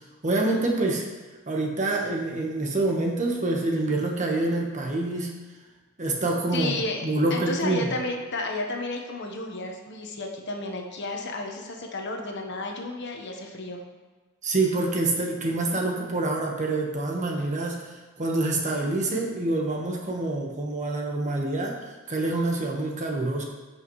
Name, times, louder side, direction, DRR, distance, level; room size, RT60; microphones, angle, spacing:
voice 1, 0.2-1.0 1.5-5.3 6.0-6.8 7.0-7.9 14.4-21.7 22.1-23.4, right 2 dB, 35° right, 0 dB, 1.3 m, -26 dB
voice 2, 6.5-7.0 7.3-13.8, left 2 dB, 60° left, 2 dB, 1.1 m, -32 dB
15.0 x 5.6 x 3.1 m, 1.3 s
head